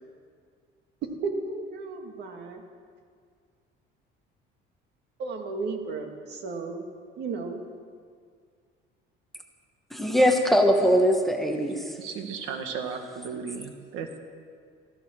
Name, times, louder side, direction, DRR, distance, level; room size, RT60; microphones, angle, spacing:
voice 1, 1.2-2.6 5.2-6.8 7.2-7.6, right 4 dB, 55° right, 4 dB, 1.9 m, -34 dB
voice 2, 9.9-11.9, equal, ahead, 4 dB, 1.0 m, -21 dB
voice 3, 12.0-14.2, right 6 dB, 85° right, 6 dB, 1.6 m, -35 dB
15.0 x 13.5 x 6.4 m, 2.1 s
cardioid pair, 165°, 21 cm